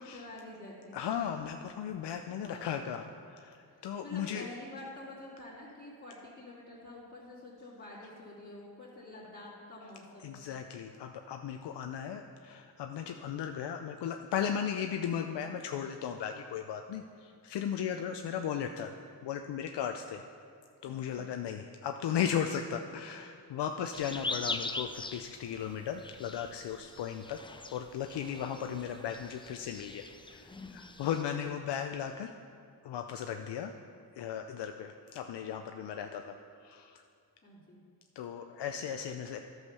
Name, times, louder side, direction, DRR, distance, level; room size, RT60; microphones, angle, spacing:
voice 1, 0.0-0.9 2.4-2.8 3.7-10.3 20.8-21.4 37.4-37.8, left 2 dB, 30° left, -10 dB, 2.6 m, -48 dB
voice 2, 0.9-4.5 10.2-18.9 19.2-20.2 20.8-27.4 27.7-30.1 30.3-32.3 32.8-33.7 34.2-37.0 38.2-39.4, left 8 dB, 75° left, 6 dB, 0.6 m, -36 dB
sound 1, 23.9-31.2, left 3 dB, 10° left, 0.4 m, -42 dB
10.5 x 6.5 x 5.6 m, 2.4 s
cardioid pair, 70°, 42 cm